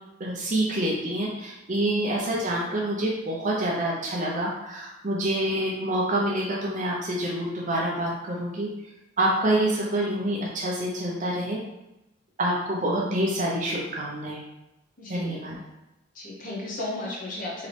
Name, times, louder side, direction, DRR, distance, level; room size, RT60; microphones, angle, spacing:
voice 1, 0.2-8.7 9.2-11.6 12.4-14.4 15.1-15.5, right 1 dB, 40° right, -3 dB, 0.6 m, -27 dB
voice 2, 15.0-15.6 16.1-17.7, left 2 dB, 40° left, -3 dB, 0.9 m, -35 dB
3.8 x 3.0 x 3.3 m, 0.92 s
head